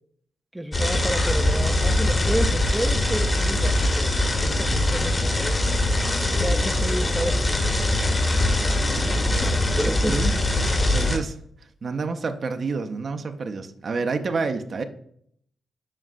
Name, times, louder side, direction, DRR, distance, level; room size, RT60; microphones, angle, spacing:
voice 1, 0.5-5.6 6.4-7.6 9.2-10.2, right 1 dB, 10° right, 9 dB, 0.5 m, -31 dB
sound 1, 0.7-11.2, left 1 dB, 35° left, 1.2 m, -22 dB
voice 2, 8.6-10.3 10.9-11.4 11.8-14.8, right 4 dB, 55° right, 7 dB, 0.6 m, -29 dB
7.5 x 5.2 x 2.4 m, 0.65 s
hypercardioid pair, 40°, 0 cm